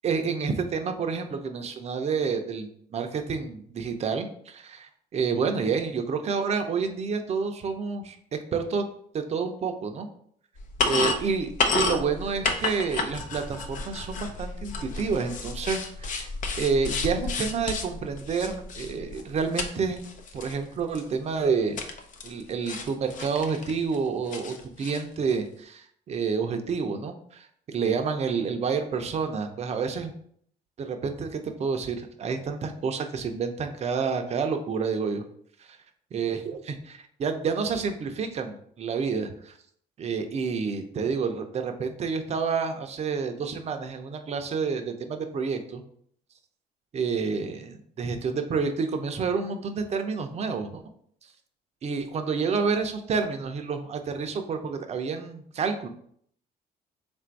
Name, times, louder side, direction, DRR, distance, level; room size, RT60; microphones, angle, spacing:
voice 1, 0.0-8.2 8.5-8.9 9.1-10.1 10.8-16.3 16.6-20.0 20.3-21.8 22.2-30.1 30.8-35.2 36.1-39.5 40.0-45.8 46.9-50.8 51.8-55.9, right 5 dB, 40° right, 6 dB, 0.6 m, -29 dB
sound 1, 10.6-19.7 20.0-20.5 21.0-21.1 21.8-22.4 22.7-24.0 24.3-25.0, left 3 dB, 50° left, 0.6 m, -31 dB
3.7 x 2.5 x 4.5 m, 0.64 s
cardioid pair, 110°, 17 cm